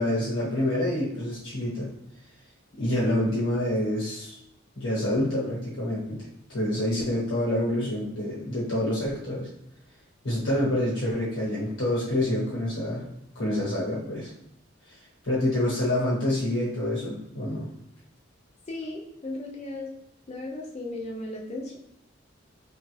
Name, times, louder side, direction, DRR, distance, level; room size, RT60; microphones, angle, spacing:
voice 1, 0.0-1.9 2.8-4.4 4.8-9.5 10.2-13.0 13.3-14.3 14.9-15.0 15.2-17.7, left 1 dB, 70° left, -7 dB, 1.1 m, -27 dB
voice 2, 18.7-19.9 20.3-21.8, left 2 dB, 30° left, -1 dB, 0.5 m, -36 dB
3.3 x 2.4 x 3.2 m, 0.80 s
head